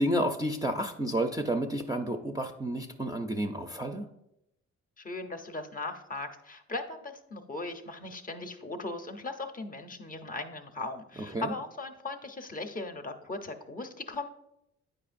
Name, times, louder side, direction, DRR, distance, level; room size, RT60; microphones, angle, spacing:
voice 1, 0.0-4.1 11.3-11.5, right 1 dB, 10° right, 5 dB, 0.4 m, -30 dB
voice 2, 5.0-14.3, left 2 dB, 30° left, 5 dB, 0.6 m, -38 dB
8.6 x 5.0 x 2.5 m, 0.81 s
cardioid pair, 90°, 30 cm